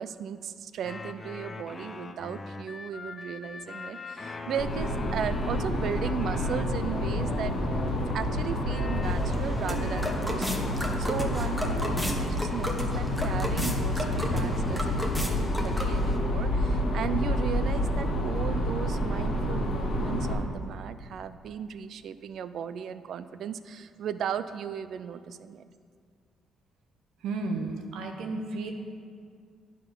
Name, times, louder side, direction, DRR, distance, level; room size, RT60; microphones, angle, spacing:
voice 1, 0.0-7.5 8.1-25.7, right 8 dB, 70° right, 12 dB, 0.3 m, -36 dB
sound 1, 0.8-8.2 8.7-10.7, left 3 dB, 30° left, 0.4 m, -42 dB
sound 2, 4.6-20.3, left 1 dB, 65° left, 1.4 m, -28 dB
sound 3, 9.0-16.2, equal, ahead, 0.9 m, -35 dB
voice 2, 27.2-28.7, right 3 dB, 85° right, 4 dB, 0.7 m, -33 dB
10.0 x 3.7 x 5.4 m, 2.2 s
cardioid pair, 90°, 0 cm